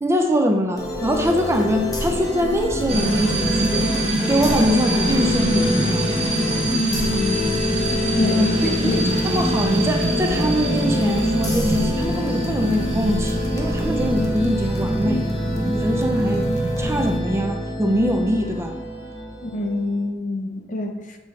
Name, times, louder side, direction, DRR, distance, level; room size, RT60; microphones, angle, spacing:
voice 1, 0.0-3.9 4.3-6.1 8.3-16.5 16.8-18.8, equal, 15° right, 3 dB, 0.5 m, -23 dB
sound 1, 0.8-20.0, left 1 dB, 20° left, 0.9 m, -26 dB
sound 2, 2.9-17.4, right 1 dB, 30° right, 0.9 m, -25 dB
voice 2, 6.7-7.5 8.2-9.1 19.4-21.2, left 2 dB, 45° left, 4 dB, 0.7 m, -26 dB
7.6 x 4.3 x 3.2 m, 1.3 s
head